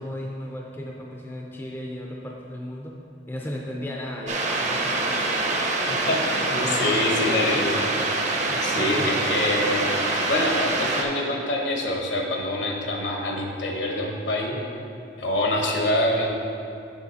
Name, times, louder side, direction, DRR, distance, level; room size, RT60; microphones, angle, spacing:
voice 1, 0.0-3.0 3.3-5.3 5.9-7.6 8.4-9.2, left 1 dB, 10° left, -1 dB, 0.4 m, -36 dB
sound 1, 4.3-11.0, right 2 dB, 40° right, 0.7 m, -25 dB
voice 2, 5.9-7.9 8.6-9.9 10.3-14.6 15.2-16.3, left 1 dB, 70° left, 1 dB, 1.0 m, -25 dB
7.2 x 6.3 x 4.1 m, 2.6 s
head